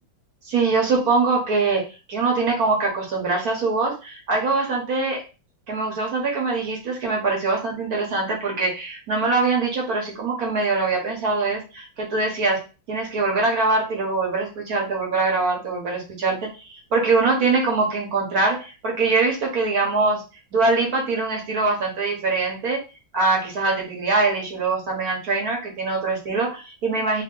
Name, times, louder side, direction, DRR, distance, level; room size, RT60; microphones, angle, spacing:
voice 1, 0.5-5.2 5.7-20.2 20.5-22.8 23.1-27.2, right 3 dB, 55° right, -1 dB, 1.4 m, -23 dB
3.1 x 2.8 x 3.7 m, 0.31 s
omnidirectional pair, 2.2 m